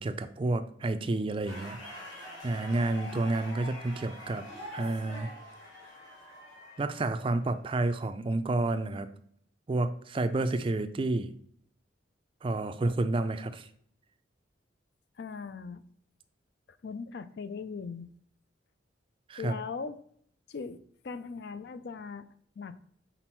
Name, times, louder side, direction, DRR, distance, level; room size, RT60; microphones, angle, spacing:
voice 1, 0.0-1.8 2.4-4.4 4.7-5.3 6.8-9.1 9.7-11.3 12.4-13.7 19.3-19.6, right 2 dB, 25° right, 10 dB, 0.4 m, -30 dB
sound 1, 1.4-7.6, left 1 dB, 80° left, 2.5 m, -45 dB
voice 2, 15.2-15.8 16.8-18.1 19.4-20.0 20.5-22.3 22.6-22.8, left 5 dB, 55° left, 13 dB, 0.4 m, -39 dB
6.1 x 4.0 x 4.4 m, 0.66 s
head